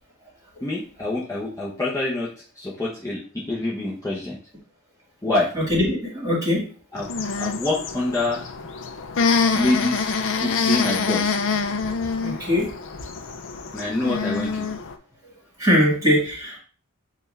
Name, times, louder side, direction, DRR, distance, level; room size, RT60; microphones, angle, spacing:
voice 1, 0.6-4.4 5.2-5.5 6.9-7.1 7.4-8.5 9.5-11.4 13.7-14.7, left 2 dB, 15° left, -6 dB, 0.8 m, -26 dB
voice 2, 5.5-6.6 12.2-12.7 15.6-16.6, left 1 dB, 15° right, -3 dB, 1.9 m, -21 dB
sound 1, 7.0-15.0, left 5 dB, 60° left, 0.5 m, -26 dB
6.6 x 2.4 x 3.2 m, 0.40 s
head